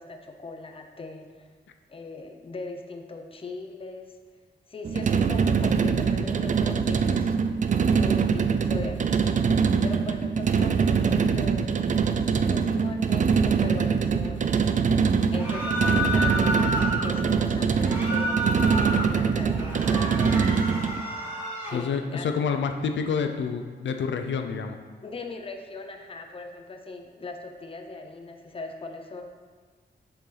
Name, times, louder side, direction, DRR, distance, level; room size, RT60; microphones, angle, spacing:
voice 1, 0.0-1.5 1.9-4.1 4.7-7.4 7.9-9.3 9.8-11.7 12.4-14.8 15.3-18.5 19.1-20.4 21.6-22.3 25.0-29.2, left 3 dB, 30° left, 4 dB, 0.7 m, -39 dB
sound 1, 4.8-21.0, right 6 dB, 45° right, 0.4 m, -23 dB
sound 2, 15.3-17.1 17.7-19.1 19.5-21.8, equal, 10° right, 2.5 m, -30 dB
voice 2, 21.7-24.8, left 6 dB, 85° left, 6 dB, 0.6 m, -28 dB
7.8 x 6.8 x 4.0 m, 1.5 s
wide cardioid pair, 160°, 19 cm